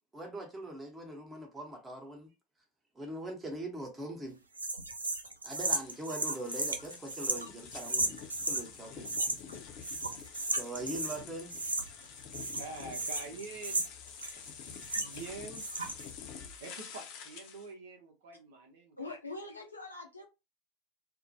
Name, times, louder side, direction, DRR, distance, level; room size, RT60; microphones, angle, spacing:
voice 1, 0.1-2.3 2.9-4.4 5.4-8.2 8.4-9.1 10.5-11.5, right 1 dB, 15° right, 0.9 m, -41 dB
sound 1, 4.6-8.7 9.0-9.6 9.8-11.2 11.5-12.1 12.3-15.3 15.5-16.1, right 2 dB, 85° right, 0.4 m, -35 dB
sound 2, 5.7-17.7, left 7 dB, 50° left, 0.6 m, -48 dB
voice 2, 12.5-13.8 14.2-14.6 15.0-15.7 16.6-19.1, right 4 dB, 65° right, 0.8 m, -46 dB
voice 3, 19.0-20.2, left 2 dB, 85° left, 0.7 m, -43 dB
2.5 x 2.1 x 2.7 m
figure-of-eight pair, 80°, 0 cm